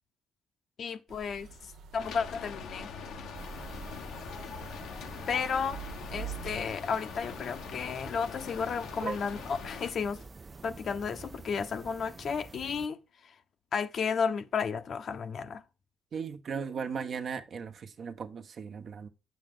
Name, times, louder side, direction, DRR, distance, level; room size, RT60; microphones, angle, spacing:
voice 1, 0.8-2.9 5.3-5.8 6.1-10.2 10.6-13.0 13.7-15.6, left 6 dB, 60° left, 1.0 m, -33 dB
sound 1, 1.1-6.7, right 7 dB, 80° right, 1.3 m, -46 dB
Rain, 2.0-9.9, left 6 dB, 80° left, 1.3 m, -43 dB
sound 2, 3.3-12.9, right 4 dB, 30° right, 0.6 m, -49 dB
voice 2, 16.1-19.1, right 6 dB, 55° right, 1.2 m, -37 dB
9.0 x 7.4 x 3.8 m
cardioid pair, 90°, 0 cm